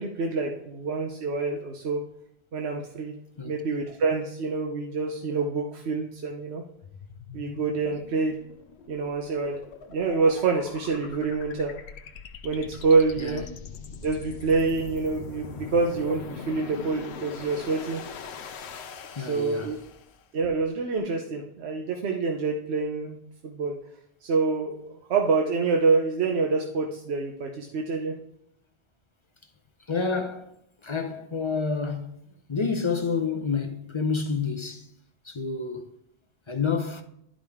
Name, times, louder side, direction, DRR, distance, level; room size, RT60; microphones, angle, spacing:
voice 1, 0.0-2.0 2.5-3.1 3.4-6.6 7.3-8.4 8.9-9.6 9.9-11.7 12.4-13.4 14.0-18.0 19.3-19.8 20.3-23.2 23.4-23.8 24.2-28.2, right 4 dB, 80° right, 1.1 m, -26 dB
sound 1, 6.8-20.2, left 6 dB, 80° left, 0.9 m, -42 dB
voice 2, 13.2-13.6 19.1-19.8 29.8-30.5 30.8-32.2 32.5-34.9 35.2-35.9 36.5-37.0, left 5 dB, 35° left, 0.5 m, -29 dB
11.5 x 5.0 x 3.5 m
omnidirectional pair, 1.1 m